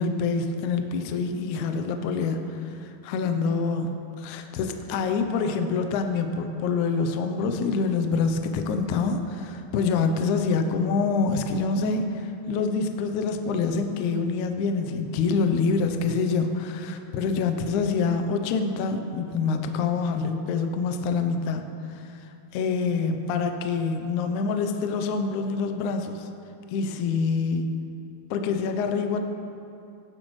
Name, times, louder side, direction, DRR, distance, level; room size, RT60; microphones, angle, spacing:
voice 1, 0.0-2.6 3.1-21.6 22.5-26.3 26.7-27.7 28.3-29.2, left 4 dB, 85° left, 6 dB, 1.7 m, -26 dB
17.0 x 11.0 x 3.2 m, 2.7 s
omnidirectional pair, 4.4 m